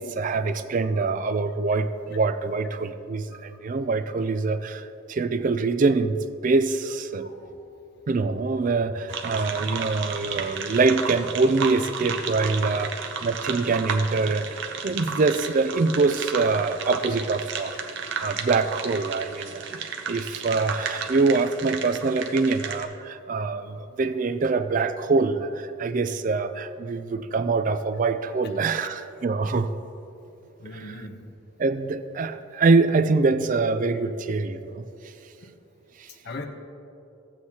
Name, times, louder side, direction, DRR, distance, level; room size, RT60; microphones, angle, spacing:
voice 1, 0.0-6.2 6.4-7.3 8.1-17.7 18.2-29.7 30.7-30.9 31.6-34.8 36.0-36.1, right 3 dB, 40° right, 11 dB, 0.3 m, -24 dB
voice 2, 7.2-7.6 30.6-31.2 35.4-35.5 36.2-36.5, left 2 dB, 50° left, 4 dB, 0.8 m, -40 dB
sound 1, 9.1-22.8, right 6 dB, 60° right, 0.7 m, -33 dB
14.0 x 8.1 x 2.9 m, 2.7 s
head